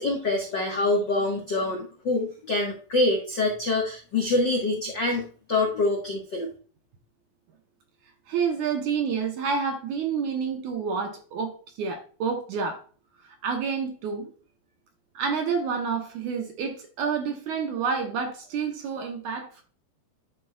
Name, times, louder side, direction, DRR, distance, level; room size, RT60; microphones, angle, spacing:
voice 1, 0.0-6.5, left 2 dB, 75° left, 1.0 m, -25 dB
voice 2, 8.3-12.8 13.2-14.3 15.2-19.6, right 6 dB, 70° right, 2.0 m, -29 dB
12.0 x 4.6 x 2.3 m
omnidirectional pair, 4.3 m